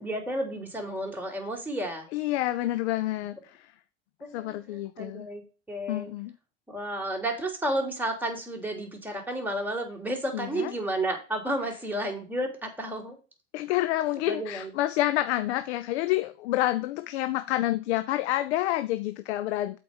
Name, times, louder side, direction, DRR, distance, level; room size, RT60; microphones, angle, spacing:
voice 1, 0.0-2.1 4.2-6.1 6.7-13.2 14.3-14.7, right 1 dB, 5° right, 3.3 m, -32 dB
voice 2, 2.1-3.7 4.3-5.3 5.9-6.3 10.3-10.7 13.5-19.8, left 15 dB, 75° left, 0.6 m, -28 dB
7.8 x 4.8 x 5.3 m
hypercardioid pair, 85°, 33 cm